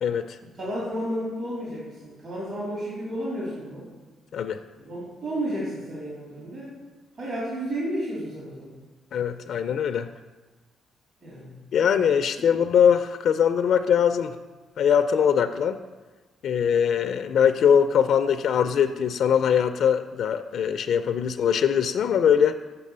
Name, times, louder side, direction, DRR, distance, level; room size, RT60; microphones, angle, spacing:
voice 1, 0.0-0.4 4.3-4.6 9.1-10.1 11.7-14.3 14.8-15.8 16.4-22.5, left 8 dB, 70° left, 9 dB, 0.4 m, -22 dB
voice 2, 0.5-3.9 4.8-6.7 7.2-8.7 11.2-11.5, equal, 50° right, -7 dB, 3.1 m, -32 dB
7.5 x 5.4 x 6.7 m, 1.3 s
cardioid pair, 90°, 0 cm